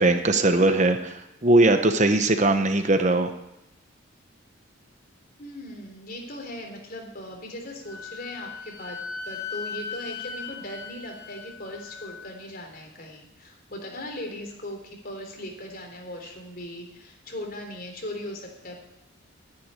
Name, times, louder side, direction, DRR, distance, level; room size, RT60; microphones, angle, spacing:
voice 1, 0.0-3.3, right 2 dB, 35° right, 7 dB, 0.9 m, -20 dB
voice 2, 2.0-2.5 5.4-9.0 9.2-18.8, left 1 dB, 45° left, 2 dB, 3.6 m, -39 dB
Wind instrument woodwind instrument, 7.9-12.3, left 5 dB, 70° left, 2.4 m, -38 dB
12.0 x 10.5 x 9.6 m, 0.89 s
head